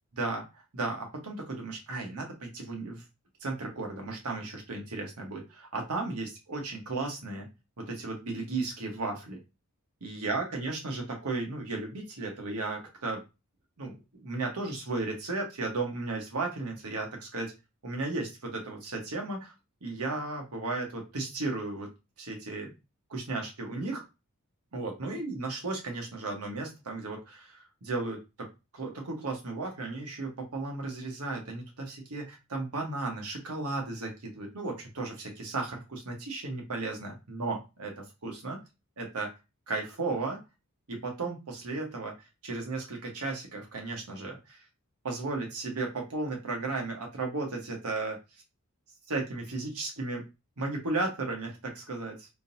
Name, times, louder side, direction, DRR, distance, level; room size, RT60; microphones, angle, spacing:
voice 1, 0.1-0.4 0.7-3.0 3.4-7.5 7.8-9.4 10.0-13.2 13.8-17.5 17.8-19.5 19.8-21.9 22.2-22.7 23.1-24.0 24.7-28.5 28.7-38.6 39.0-39.3 39.7-40.4 40.9-42.1 42.4-44.6 45.0-48.2 49.1-50.2 50.6-52.3, right 3 dB, 80° right, 1 dB, 1.1 m, -35 dB
3.7 x 2.7 x 2.6 m, 0.27 s
head